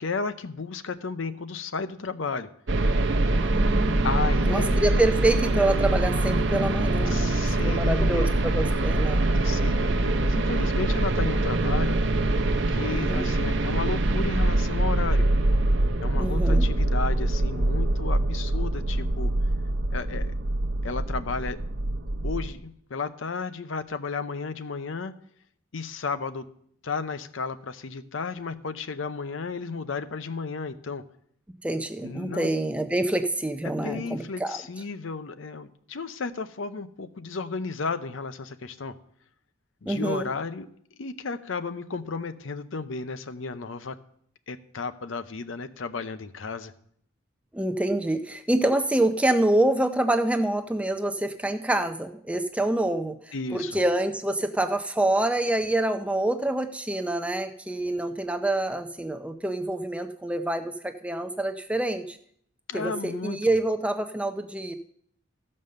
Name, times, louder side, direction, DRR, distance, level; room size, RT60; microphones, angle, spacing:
voice 1, 0.0-2.5 4.0-4.8 7.1-8.7 9.3-12.0 12.7-15.3 16.0-19.3 19.9-20.3 20.8-21.6 22.2-25.1 25.7-26.5 26.8-31.0 32.0-32.5 33.6-38.9 39.8-44.0 44.5-46.7 53.3-53.8 62.7-63.5, left 4 dB, 70° left, 11 dB, 0.6 m, -33 dB
sound 1, 2.7-22.5, right 2 dB, 60° right, 0.7 m, -24 dB
voice 2, 3.3-9.3 12.9-13.3 16.1-16.7 31.6-34.6 39.9-40.3 47.5-62.2 62.7-64.7, right 1 dB, 5° right, 7 dB, 0.5 m, -26 dB
14.5 x 5.4 x 6.6 m, 0.67 s
head